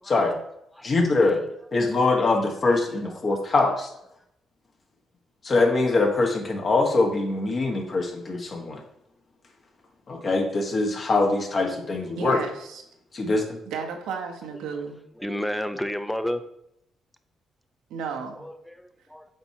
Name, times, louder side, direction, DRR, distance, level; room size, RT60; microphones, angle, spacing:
voice 1, 0.8-1.4 1.7-3.9 5.4-8.8 10.1-12.4 13.1-13.6, left 3 dB, 45° left, 2 dB, 1.5 m, -23 dB
voice 2, 12.2-12.8 13.7-15.0 17.9-18.5, right 5 dB, 80° right, 3 dB, 1.0 m, -33 dB
voice 3, 15.2-16.4 18.4-19.3, equal, 5° left, 10 dB, 0.6 m, -31 dB
7.7 x 4.6 x 2.9 m, 0.77 s
supercardioid pair, 60°, 0 cm